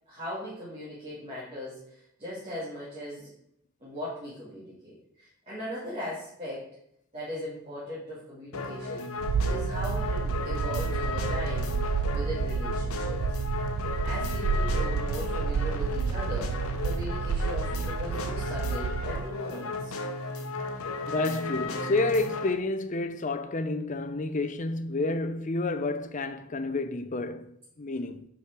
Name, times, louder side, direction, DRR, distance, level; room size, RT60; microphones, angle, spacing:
voice 1, 0.1-3.3 3.8-6.7 7.1-9.1 9.4-11.7 12.1-13.2 14.0-19.9, equal, 30° right, 2.3 m, -38 dB
sound 1, 8.5-22.5, left 3 dB, 70° left, 0.9 m, -35 dB
sound 2, 9.2-19.2, right 5 dB, 75° right, 0.3 m, -30 dB
voice 2, 21.1-28.3, left 2 dB, 35° left, 0.5 m, -30 dB
6.0 x 5.0 x 5.9 m
head